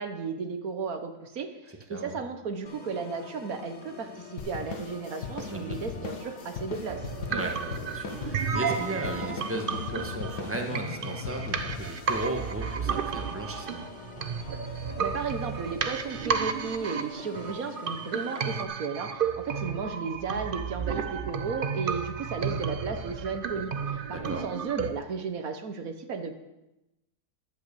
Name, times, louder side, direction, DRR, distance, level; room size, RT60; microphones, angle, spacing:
voice 1, 0.0-7.1 14.9-26.3, right 5 dB, 60° right, 7 dB, 1.5 m, -34 dB
voice 2, 1.7-2.2 5.5-5.8 7.3-13.9 24.1-24.4, right 1 dB, 10° right, 2 dB, 1.5 m, -36 dB
Organ, 2.7-18.7, left 5 dB, 35° left, 0.8 m, -46 dB
sound 1, 4.4-13.2, left 5 dB, 80° left, 2.1 m, -39 dB
sound 2, 6.9-24.9, right 6 dB, 45° right, 0.7 m, -33 dB
12.0 x 8.5 x 6.8 m, 0.96 s
omnidirectional pair, 1.7 m